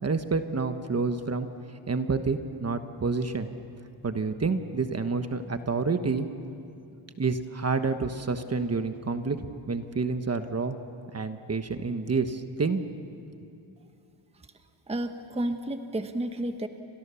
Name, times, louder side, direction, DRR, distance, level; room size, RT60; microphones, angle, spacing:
voice 1, 0.0-1.5 1.9-3.5 4.0-6.3 7.2-10.8 11.1-12.8, right 4 dB, 30° right, 8 dB, 1.2 m, -28 dB
voice 2, 14.9-16.7, right 1 dB, 15° right, 7 dB, 1.1 m, -31 dB
30.0 x 25.5 x 7.0 m, 2.6 s
wide cardioid pair, 135°, 49 cm